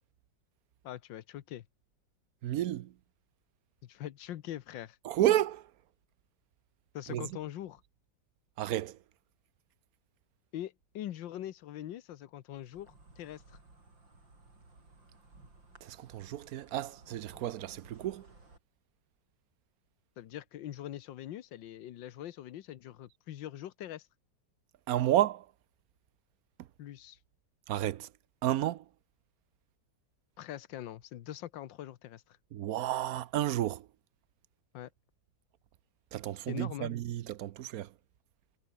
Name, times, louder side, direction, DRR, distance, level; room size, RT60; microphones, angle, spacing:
voice 1, 0.8-1.6 3.8-5.0 6.9-7.8 10.5-13.6 20.2-24.1 26.8-27.2 30.4-32.4 34.7-34.9 36.5-36.9, left 12 dB, 85° left, 1.6 m, -43 dB
voice 2, 2.4-2.9 5.0-5.7 7.1-7.3 8.6-9.0 15.8-18.3 24.9-25.5 27.7-28.1 28.4-28.8 32.5-33.9 36.1-37.9, right 13 dB, 65° right, 0.9 m, -31 dB
Insect, 12.5-18.6, right 3 dB, 85° right, 6.8 m, -58 dB
omnidirectional pair, 2.0 m